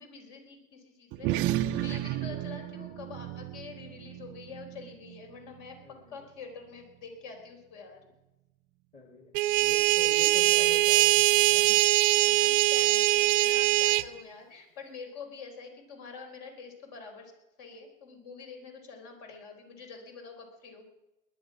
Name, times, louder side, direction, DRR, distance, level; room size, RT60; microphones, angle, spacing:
voice 1, 0.0-5.8 6.1-8.0 10.6-10.7 12.2-17.3 17.6-20.9, left 5 dB, 50° left, 3 dB, 4.5 m, -46 dB
sound 1, 1.1-5.9, right 13 dB, 30° right, 0.5 m, -34 dB
voice 2, 5.8-6.3 8.9-9.3 9.6-11.8, left 3 dB, 15° left, 3 dB, 1.9 m, -45 dB
sound 2, 9.3-14.1, right 19 dB, 65° right, 0.7 m, -22 dB
20.5 x 10.5 x 5.9 m, 0.99 s
supercardioid pair, 135°, 43 cm